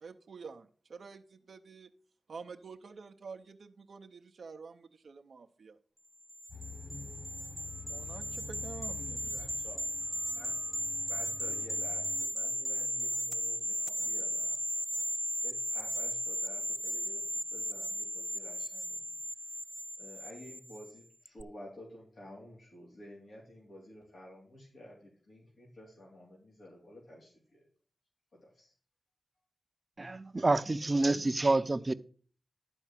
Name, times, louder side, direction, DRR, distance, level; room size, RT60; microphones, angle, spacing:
voice 1, 0.0-1.9 2.3-5.8 7.8-9.4, right 5 dB, 80° right, 0.7 m, -48 dB
sound 1, 6.3-20.9 21.3-21.4, equal, 5° right, 0.4 m, -36 dB
sound 2, 6.5-12.3, left 3 dB, 50° left, 5.8 m, -48 dB
voice 2, 9.3-9.8 10.3-10.5 11.1-14.6 15.4-19.7 20.0-27.7 28.3-28.7, left 1 dB, 70° left, 3.4 m, -52 dB
voice 3, 30.0-31.9, right 2 dB, 35° right, 0.7 m, -28 dB
12.0 x 4.5 x 7.4 m
cardioid pair, 60°, 0 cm